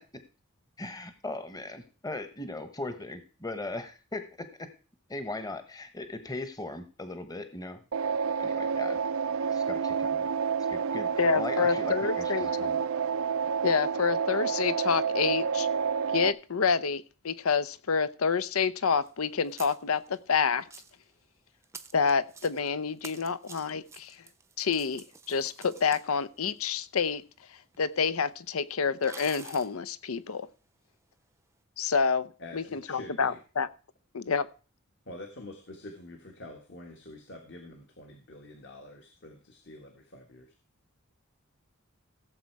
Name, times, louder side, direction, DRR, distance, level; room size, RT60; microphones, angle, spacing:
voice 1, 0.8-4.2 4.6-4.7 5.1-7.8 8.4-9.0 9.5-10.3 10.7-12.8, left 2 dB, 15° left, 9 dB, 1.1 m, -38 dB
sound 1, 7.9-16.3, right 6 dB, 80° right, 0.5 m, -29 dB
voice 2, 11.2-12.5 13.6-15.7 16.1-20.6 21.9-24.2 24.6-27.2 27.8-30.5 31.8-33.7 34.1-34.5, left 5 dB, 90° left, 16 dB, 0.7 m, -28 dB
sound 2, 19.0-19.1 19.4-20.2 20.6-21.0 21.6-22.7 23.0-26.9 27.7-27.8 28.0-28.1 29.0-29.7, right 5 dB, 15° right, 0.6 m, -48 dB
voice 3, 32.4-33.4 35.0-40.5, left 1 dB, 55° left, 3 dB, 1.7 m, -46 dB
16.5 x 7.6 x 4.7 m, 0.35 s
head